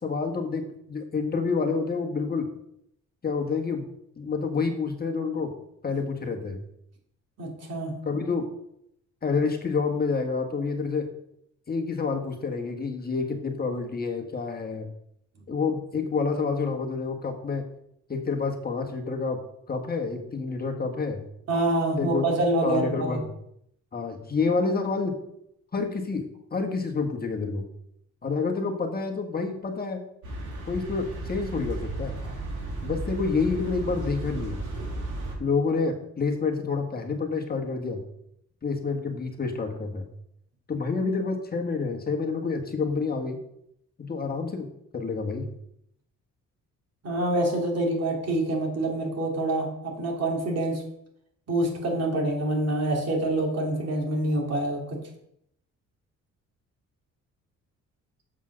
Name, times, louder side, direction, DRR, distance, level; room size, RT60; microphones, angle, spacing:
voice 1, 0.0-2.5 3.2-3.9 4.2-5.5 5.8-6.6 8.0-8.4 9.2-11.1 11.7-14.9 15.5-17.6 18.1-19.4 19.7-21.3 22.0-22.2 22.6-23.3 23.9-25.2 25.7-27.7 28.2-30.0 30.6-32.2 32.8-34.6 35.4-38.0 38.6-40.1 40.7-43.4 44.0-44.7 44.9-45.5, left 4 dB, 30° left, 3 dB, 1.5 m, -28 dB
voice 2, 7.4-7.9 21.5-23.2 47.0-50.8 51.5-55.0, right 1 dB, 55° right, 0 dB, 3.2 m, -26 dB
sound 1, 30.2-35.3, right 2 dB, 80° right, 3.8 m, -34 dB
7.4 x 5.5 x 6.2 m, 0.73 s
cardioid pair, 90°, 30 cm